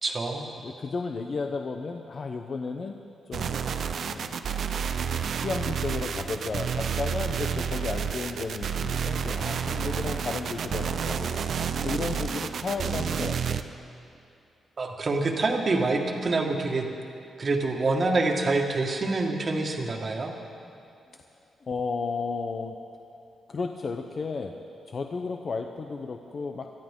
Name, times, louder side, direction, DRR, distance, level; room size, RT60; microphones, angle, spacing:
voice 1, 0.0-0.5 14.8-16.8 17.4-20.3, right 3 dB, 45° right, 2 dB, 1.8 m, -26 dB
voice 2, 0.6-3.6 4.1-4.4 5.4-11.3 11.8-13.6 21.6-22.8 23.5-24.6 24.8-26.7, left 4 dB, 50° left, 4 dB, 0.7 m, -33 dB
sound 1, 3.3-13.6, right 7 dB, 65° right, 0.6 m, -30 dB
22.0 x 13.5 x 3.7 m, 2.6 s
cardioid pair, 85°, 0 cm